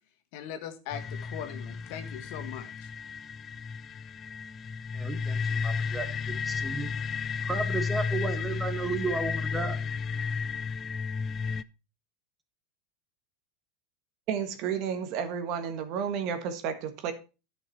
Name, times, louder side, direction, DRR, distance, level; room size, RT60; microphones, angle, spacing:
voice 1, 0.3-2.9, left 9 dB, 60° left, 8 dB, 1.5 m, -40 dB
sound 1, 0.9-11.6, left 5 dB, 30° left, 0.5 m, -33 dB
voice 2, 4.9-6.1 6.4-6.9 7.5-9.8, right 3 dB, 15° right, 8 dB, 1.7 m, -33 dB
voice 3, 14.3-17.1, right 7 dB, 55° right, 8 dB, 1.5 m, -31 dB
10.5 x 5.9 x 4.5 m, 0.31 s
hypercardioid pair, 90°, 0 cm